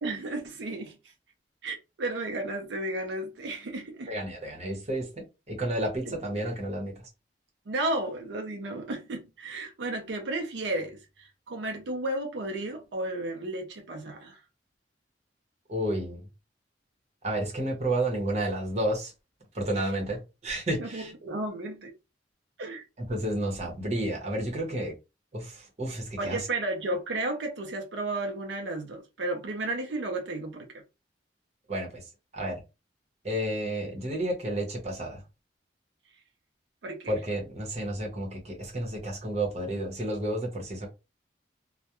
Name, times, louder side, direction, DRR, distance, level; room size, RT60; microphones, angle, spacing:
voice 1, 0.0-1.0 1.6-4.1 6.0-6.1 7.7-14.4 20.8-21.9 22.6-22.8 26.2-30.7 36.8-37.1, right 2 dB, 85° right, 0.5 m, -33 dB
voice 2, 4.1-7.1 15.7-16.2 17.2-19.1 19.5-21.1 23.1-24.9 25.3-26.5 31.7-32.0 32.3-32.6 33.2-35.2 37.1-40.9, right 1 dB, 40° right, 0.8 m, -31 dB
2.3 x 2.1 x 2.8 m
head